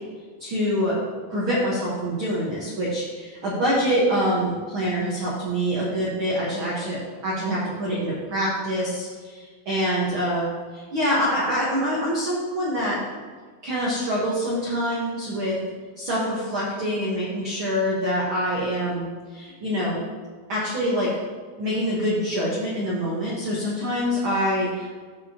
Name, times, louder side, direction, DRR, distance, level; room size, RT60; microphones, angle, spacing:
voice 1, 0.4-1.0 1.3-10.5 10.7-13.0 13.6-15.6 16.0-20.0 20.5-21.1 21.6-24.9, equal, 85° right, -5 dB, 1.1 m, -25 dB
13.5 x 4.9 x 2.8 m, 1.5 s
omnidirectional pair, 4.4 m